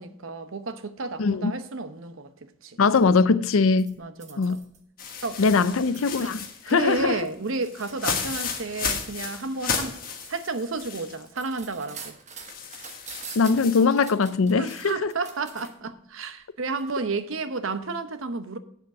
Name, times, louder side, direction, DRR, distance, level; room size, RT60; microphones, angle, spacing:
voice 1, 0.0-2.8 4.0-4.6 5.2-5.8 6.7-10.0 10.3-12.2 14.6-18.6, right 3 dB, 80° right, 0.9 m, -31 dB
voice 2, 1.2-1.5 2.8-4.0 4.4-4.6 5.4-7.2 13.4-15.1, left 4 dB, 90° left, 0.5 m, -21 dB
sound 1, 3.8-6.8 7.2-15.9 16.7-16.8, right 5 dB, 35° right, 1.2 m, -45 dB
sound 2, 5.0-11.2 11.6-11.7 12.5-13.8, left 6 dB, 45° left, 1.4 m, -33 dB
8.0 x 7.5 x 6.0 m
head